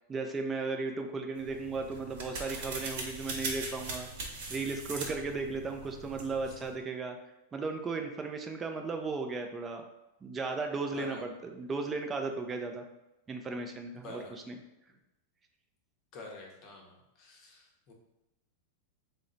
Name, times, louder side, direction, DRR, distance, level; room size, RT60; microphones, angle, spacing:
voice 1, 0.1-7.2 7.5-9.8 10.2-12.8 13.3-14.6, right 3 dB, 15° right, 4 dB, 0.3 m, -36 dB
sound 1, 1.4-6.7, right 3 dB, 55° right, 0.9 m, -41 dB
voice 2, 14.0-14.3 16.1-17.9, left 2 dB, 30° left, 0 dB, 0.7 m, -47 dB
4.2 x 2.0 x 3.8 m, 0.96 s
supercardioid pair, 165°, 0 cm